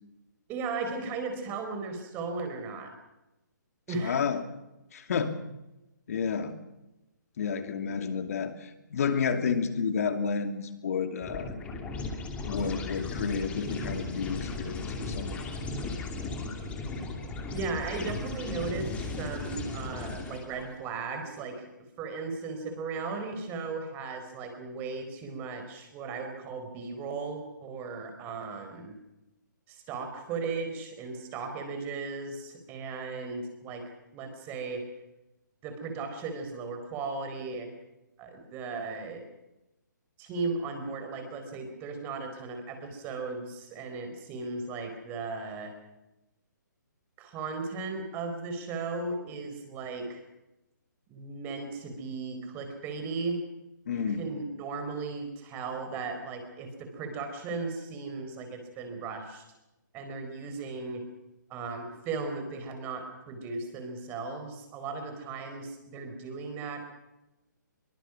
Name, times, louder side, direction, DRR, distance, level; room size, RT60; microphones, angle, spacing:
voice 1, 0.5-2.9 3.9-4.2 17.5-21.6 22.0-29.0 29.7-33.8 34.1-34.8 35.6-37.7 38.2-39.2 40.2-45.7 47.2-50.2 51.1-53.4 53.9-59.4 59.9-61.0 61.5-66.9, right 4 dB, 20° right, 6 dB, 4.3 m, -36 dB
voice 2, 4.0-4.4 4.9-5.3 6.1-6.5 7.4-11.5 12.4-15.4 53.9-54.3, left 6 dB, 50° left, 8 dB, 2.7 m, -30 dB
sound 1, 11.2-20.7, left 3 dB, 10° left, 2.7 m, -36 dB
23.5 x 22.5 x 6.1 m, 0.95 s
hypercardioid pair, 160°, 10 cm